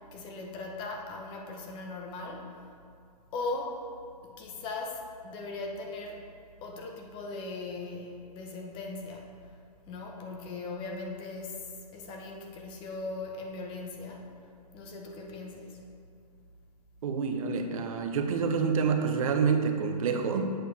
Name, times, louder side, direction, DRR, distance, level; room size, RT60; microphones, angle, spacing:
voice 1, 0.0-2.6 3.3-3.9 4.2-6.3 6.6-9.4 9.9-14.3 14.7-15.8, left 3 dB, 25° left, 1 dB, 0.8 m, -39 dB
voice 2, 17.0-20.4, right 5 dB, 55° right, 5 dB, 0.8 m, -27 dB
7.8 x 4.7 x 4.1 m, 2.3 s
hypercardioid pair, 140°, 21 cm